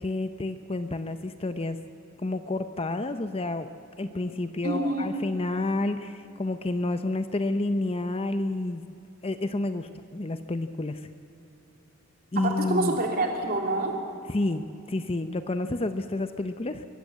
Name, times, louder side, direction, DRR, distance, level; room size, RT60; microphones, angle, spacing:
voice 1, 0.0-1.8 2.2-3.7 4.0-8.8 9.2-11.1 12.3-13.0 14.3-16.9, left 2 dB, 25° left, 10 dB, 0.6 m, -29 dB
voice 2, 4.6-5.1 12.4-14.0, right 2 dB, 45° right, 1 dB, 3.1 m, -27 dB
22.0 x 16.5 x 8.5 m, 2.8 s
head